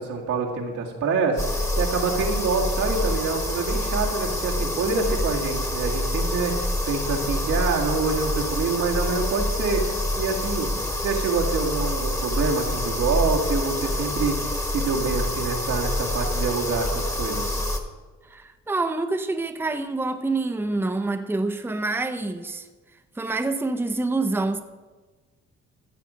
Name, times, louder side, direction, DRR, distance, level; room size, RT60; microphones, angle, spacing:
voice 1, 0.0-9.9 10.2-10.7 11.0-17.6, right 4 dB, 85° right, 2.2 m, -26 dB
sound 1, 1.4-17.8, left 1 dB, 10° left, 1.4 m, -27 dB
voice 2, 18.2-22.7 23.2-24.6, right 2 dB, 5° right, 0.7 m, -26 dB
14.5 x 7.1 x 5.1 m
cardioid pair, 90°, 30 cm